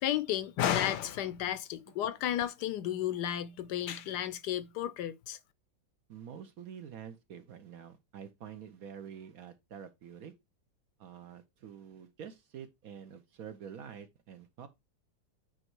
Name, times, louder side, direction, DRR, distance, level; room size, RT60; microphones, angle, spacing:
voice 1, 0.0-5.4, left 11 dB, 75° left, 1.1 m, -33 dB
voice 2, 6.1-10.3 11.0-14.7, right 8 dB, 60° right, 1.0 m, -47 dB
8.9 x 3.1 x 4.5 m
omnidirectional pair, 2.0 m